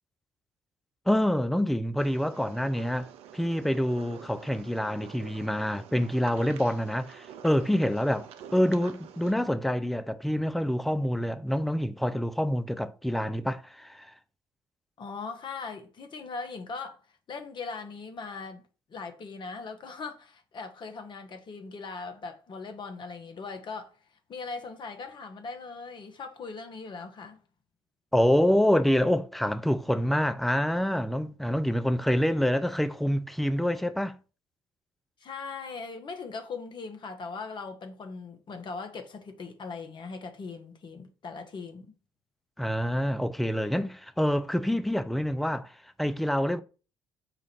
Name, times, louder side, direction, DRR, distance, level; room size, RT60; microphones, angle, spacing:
voice 1, 1.1-14.1 28.1-34.2 42.6-45.7 46.0-46.6, equal, ahead, 0.4 m, -26 dB
sound 1, 2.0-9.3, right 9 dB, 60° right, 0.5 m, -47 dB
voice 2, 15.0-17.0 17.3-18.6 18.9-24.0 24.3-27.4 35.2-41.9, left 4 dB, 45° left, 0.9 m, -39 dB
5.0 x 2.5 x 4.2 m
hypercardioid pair, 50°, 11 cm